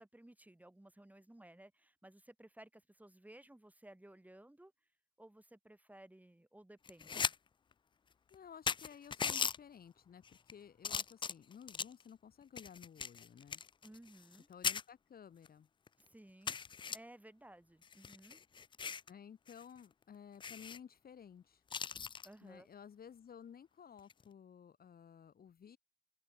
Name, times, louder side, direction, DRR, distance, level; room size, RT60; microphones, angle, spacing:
voice 1, 0.0-4.7 5.2-7.3 13.8-14.5 16.0-16.6 16.9-18.4 22.2-22.7, right 1 dB, 10° right, 5.3 m, -58 dB
sound 1, 6.8-7.3 7.7-7.8 8.3-8.4 8.7-9.6 10.2-10.5 10.8-12.0 12.6-14.4 14.6-14.8 15.4-15.5 15.9-16.0 16.5-17.0 17.8-19.1 19.5-19.6 19.9-20.0 20.4-20.8 21.7-22.3 24.0-24.2, left 6 dB, 25° left, 0.3 m, -39 dB
voice 2, 8.3-13.6 14.5-15.7 19.1-21.6 22.4-25.8, left 8 dB, 50° left, 1.9 m, -55 dB
cardioid pair, 90°, 20 cm